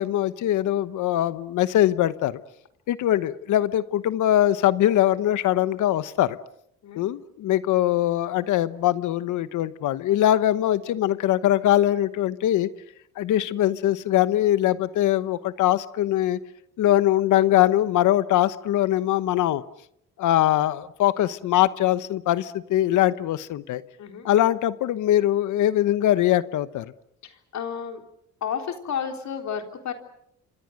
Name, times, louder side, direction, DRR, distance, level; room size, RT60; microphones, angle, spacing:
voice 1, 0.0-2.4 2.9-6.4 7.0-12.7 13.2-16.4 16.8-19.6 20.2-23.8 24.2-26.9, left 13 dB, 80° left, 15 dB, 1.1 m, -22 dB
voice 2, 24.0-24.3 27.2-28.0 28.4-29.9, left 7 dB, 65° left, 5 dB, 3.7 m, -32 dB
28.0 x 25.5 x 6.5 m, 0.75 s
cardioid pair, 90°, 30 cm